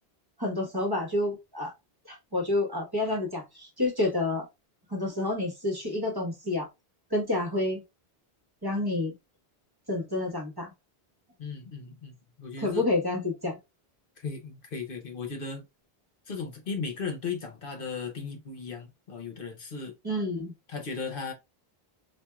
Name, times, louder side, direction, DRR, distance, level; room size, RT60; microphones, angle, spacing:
voice 1, 0.4-1.7 2.0-4.5 4.9-6.7 7.1-7.8 8.6-9.1 9.9-10.7 12.6-13.6 20.0-20.5, left 2 dB, 25° right, 1.1 m, -29 dB
voice 2, 11.4-12.9 14.2-15.6 16.3-19.9 20.7-21.3, left 5 dB, 60° left, 1.0 m, -36 dB
4.3 x 2.5 x 2.3 m
omnidirectional pair, 1.0 m